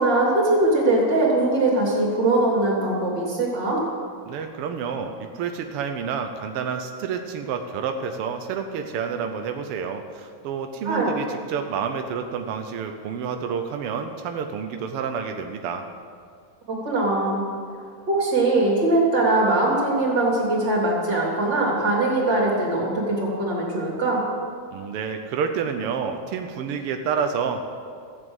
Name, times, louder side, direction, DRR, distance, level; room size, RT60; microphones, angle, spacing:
voice 1, 0.0-3.8 10.8-11.1 16.7-17.4 18.1-24.2, right 2 dB, 35° right, -3 dB, 3.5 m, -21 dB
voice 2, 4.3-15.8 24.7-27.6, right 6 dB, 80° right, 5 dB, 1.3 m, -29 dB
14.5 x 7.7 x 7.9 m, 2.2 s
omnidirectional pair, 3.5 m